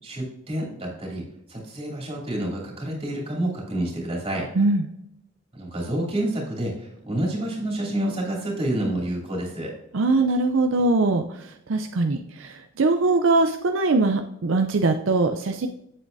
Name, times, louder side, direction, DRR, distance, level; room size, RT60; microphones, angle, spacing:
voice 1, 0.0-4.5 5.5-9.7, right 1 dB, 30° right, -2 dB, 2.9 m, -28 dB
voice 2, 4.6-4.9 9.9-15.7, right 3 dB, 70° right, 5 dB, 0.5 m, -22 dB
7.9 x 7.7 x 2.6 m, 0.80 s
head